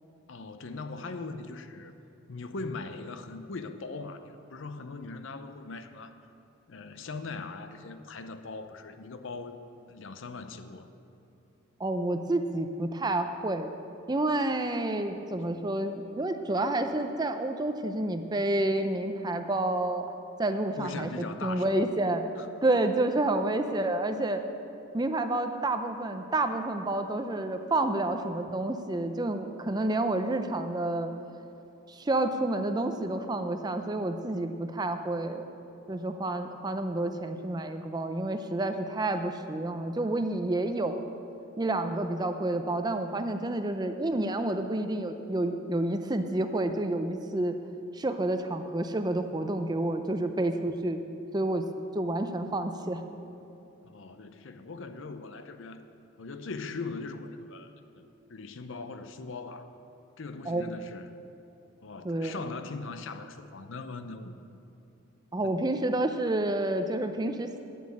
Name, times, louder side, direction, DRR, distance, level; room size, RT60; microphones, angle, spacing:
voice 1, 0.3-1.9 2.3-6.1 6.7-9.6 9.9-10.9 20.8-21.8 22.4-22.5 53.8-55.8 56.2-57.7 58.3-59.7 60.2-61.1 61.8-64.3 65.4-65.6, left 3 dB, 65° left, 10 dB, 0.6 m, -40 dB
voice 2, 11.8-13.7 14.1-20.1 20.4-22.2 22.6-24.4 24.9-31.1 31.9-35.4 35.9-41.1 41.6-47.6 47.9-51.0 51.3-51.7 51.9-53.0 60.5-60.6 62.0-62.4 65.3-67.5, right 2 dB, 20° right, 7 dB, 0.5 m, -29 dB
9.3 x 7.6 x 8.6 m, 2.8 s
head